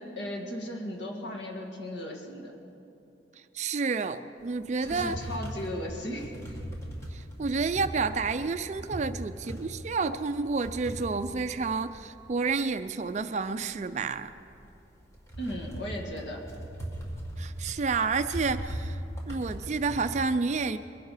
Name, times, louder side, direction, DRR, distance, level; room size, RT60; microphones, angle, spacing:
voice 1, 0.0-2.5 4.8-6.3 15.4-16.4, equal, 80° left, 1 dB, 2.0 m, -36 dB
voice 2, 3.5-5.2 7.1-14.3 17.4-19.0 19.3-20.8, right 4 dB, 40° right, 11 dB, 0.4 m, -30 dB
sound 1, 4.4-12.3 12.7-20.2, right 1 dB, 15° left, 1.8 m, -39 dB
21.5 x 11.0 x 4.9 m, 2.7 s
head